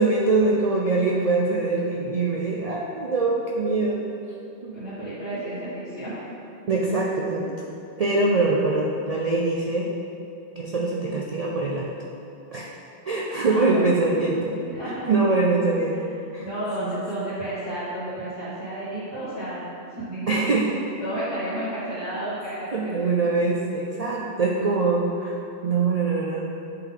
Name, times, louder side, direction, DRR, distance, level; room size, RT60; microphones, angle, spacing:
voice 1, 0.0-4.0 4.6-4.7 6.7-7.5 8.0-9.9 10.5-11.9 12.5-12.7 13.1-14.6 15.1-16.0 16.3-16.5 16.8-17.0 20.3-20.6 22.7-25.4 25.6-26.5, right 3 dB, 55° right, -3 dB, 0.4 m, -23 dB
voice 2, 4.7-6.3 13.5-13.8 14.6-15.1 15.9-16.0 16.4-20.5 21.0-22.9, right 1 dB, 55° left, -13 dB, 1.7 m, -32 dB
8.4 x 3.7 x 3.8 m, 2.7 s
omnidirectional pair, 1.2 m